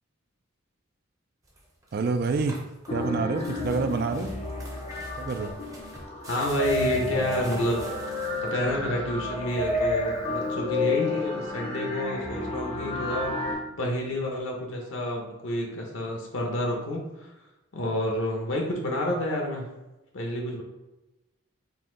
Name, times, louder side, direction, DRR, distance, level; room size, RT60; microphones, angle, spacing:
sound 1, 1.4-8.7, right 1 dB, 15° right, 0.7 m, -47 dB
voice 1, 1.9-2.6 2.9-4.3 5.2-5.5, right 4 dB, 50° right, 8 dB, 0.3 m, -27 dB
sound 2, 2.9-13.5, left 2 dB, 30° left, 0.5 m, -31 dB
voice 2, 6.2-7.9 8.4-13.3 13.8-17.3 17.7-19.7 20.1-20.6, left 1 dB, 70° left, 0 dB, 0.9 m, -29 dB
Keyboard (musical), 7.2-14.5, right 2 dB, 80° right, 0.6 m, -46 dB
4.1 x 2.6 x 3.7 m, 1.0 s
head